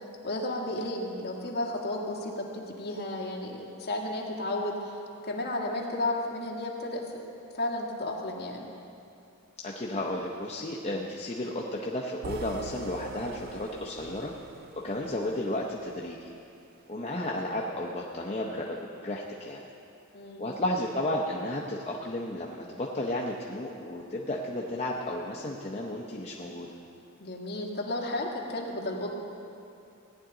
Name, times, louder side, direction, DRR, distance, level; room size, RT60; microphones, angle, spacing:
voice 1, 0.2-8.7 20.1-20.5 27.2-29.1, left 1 dB, 45° left, -2 dB, 1.6 m, -33 dB
voice 2, 9.6-14.3 14.7-16.3 16.9-19.6 20.4-26.7, left 1 dB, 30° left, -2 dB, 0.7 m, -33 dB
sound 1, 12.2-16.3, right 6 dB, 45° right, 0.3 m, -45 dB
17.5 x 9.8 x 3.8 m, 2.7 s
head